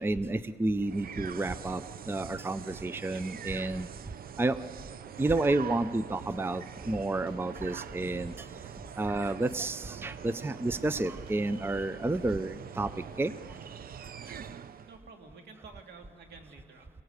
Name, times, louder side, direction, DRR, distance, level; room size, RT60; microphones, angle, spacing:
voice 1, 0.0-3.9 4.4-4.7 5.2-8.6 9.0-13.6, right 2 dB, 15° right, 15 dB, 0.5 m, -31 dB
sound 1, 0.8-15.0, right 8 dB, 60° right, 0.6 m, -44 dB
sound 2, 5.3-12.4 12.6-13.2, equal, 30° right, 2.4 m, -53 dB
voice 2, 14.9-16.9, right 4 dB, 80° right, 4 dB, 2.2 m, -50 dB
25.5 x 17.5 x 8.1 m, 2.2 s
cardioid pair, 85°, 17 cm